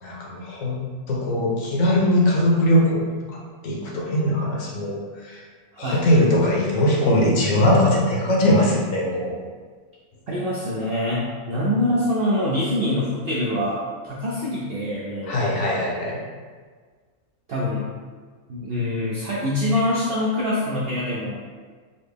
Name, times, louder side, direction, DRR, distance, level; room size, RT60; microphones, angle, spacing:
voice 1, 0.0-0.8 1.1-3.1 3.6-5.4 5.8-9.3 15.3-16.2, left 1 dB, 70° left, -2 dB, 1.0 m, -20 dB
voice 2, 10.3-15.4 17.5-17.9 18.5-21.4, left 1 dB, 65° right, -6 dB, 0.6 m, -25 dB
4.1 x 2.1 x 3.3 m, 1.5 s
omnidirectional pair, 1.5 m